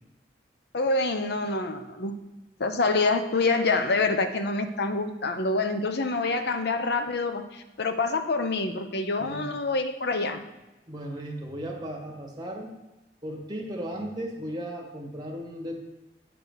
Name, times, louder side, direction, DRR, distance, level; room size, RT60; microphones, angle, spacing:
voice 1, 0.7-2.2 2.6-10.4, left 3 dB, 65° left, 8 dB, 0.8 m, -26 dB
voice 2, 10.9-12.7 13.2-15.8, right 1 dB, 25° right, 0 dB, 1.5 m, -36 dB
8.9 x 4.0 x 6.6 m, 1.0 s
head